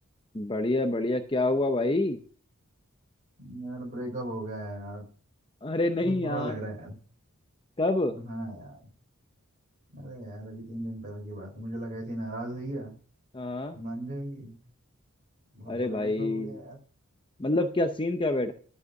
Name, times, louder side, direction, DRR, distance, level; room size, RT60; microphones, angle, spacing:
voice 1, 0.3-2.2 5.6-6.5 7.8-8.2 13.3-13.8 15.7-16.6 17.4-18.5, left 2 dB, 20° left, 7 dB, 0.6 m, -27 dB
voice 2, 3.4-5.0 6.0-7.0 8.1-8.8 9.9-12.9 13.7-14.5 15.5-16.8, right 1 dB, 35° right, 0 dB, 5.0 m, -37 dB
12.0 x 5.6 x 6.4 m, 0.42 s
head